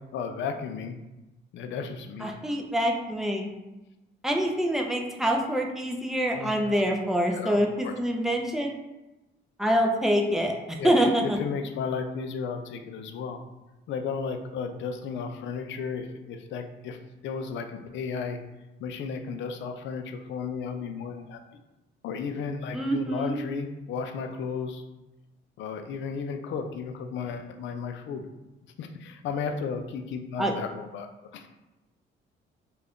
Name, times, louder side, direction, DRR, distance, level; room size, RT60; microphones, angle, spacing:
voice 1, 0.1-1.0 1.5-2.3 6.3-6.9 7.3-7.9 10.8-13.4 13.9-17.0 17.2-18.4 18.8-21.4 22.0-24.8 25.6-28.2 28.8-31.1 31.3-31.4, left 5 dB, 70° left, 6 dB, 0.4 m, -34 dB
voice 2, 2.2-3.5 4.2-8.7 9.6-10.5 10.8-11.4 22.7-23.4 30.4-30.5, equal, ahead, 1 dB, 0.4 m, -25 dB
2.5 x 2.2 x 3.5 m, 1.0 s
cardioid pair, 90°, 20 cm